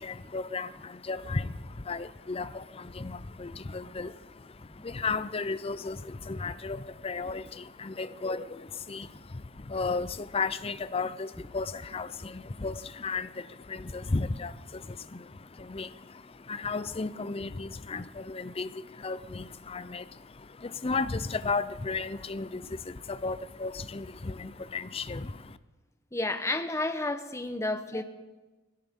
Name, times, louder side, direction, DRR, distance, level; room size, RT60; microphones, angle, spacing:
voice 1, 0.0-25.6, left 4 dB, 30° left, 14 dB, 0.6 m, -35 dB
voice 2, 26.1-28.0, left 2 dB, 15° left, 8 dB, 1.0 m, -31 dB
21.5 x 16.5 x 3.7 m, 1.2 s
head